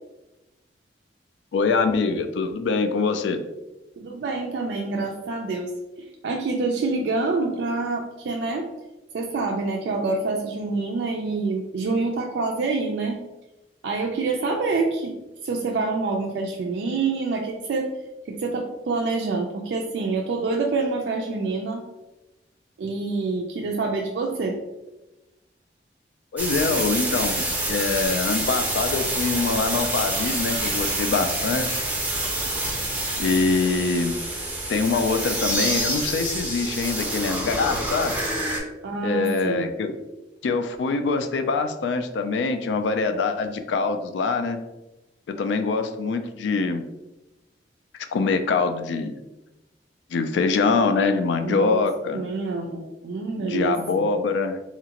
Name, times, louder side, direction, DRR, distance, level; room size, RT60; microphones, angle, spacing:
voice 1, 1.5-3.4 26.3-31.8 33.2-34.2 34.7-38.2 39.0-39.9 40.4-44.6 45.3-46.8 47.9-49.2 50.1-52.2 53.4-54.6, left 4 dB, 85° left, 8 dB, 0.3 m, -24 dB
voice 2, 4.0-8.7 9.1-13.2 13.8-15.1 15.4-17.9 18.3-21.8 22.8-24.6 38.8-39.7 51.4-51.9 52.1-54.0, right 3 dB, 75° right, 1 dB, 0.3 m, -27 dB
sound 1, 26.4-38.6, right 1 dB, 10° right, 0.4 m, -27 dB
2.9 x 2.4 x 2.8 m, 1.0 s
head